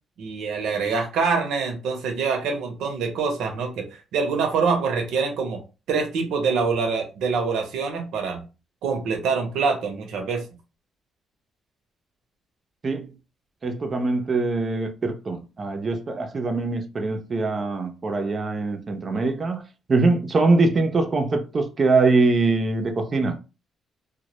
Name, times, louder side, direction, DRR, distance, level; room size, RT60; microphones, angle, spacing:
voice 1, 0.2-3.9 4.1-5.6 5.9-8.4 8.8-10.4, right 5 dB, 85° right, 0.6 m, -25 dB
voice 2, 13.6-19.6 19.9-23.4, right 3 dB, 40° right, 0.5 m, -23 dB
2.1 x 2.0 x 2.8 m
cardioid pair, 90°, 0 cm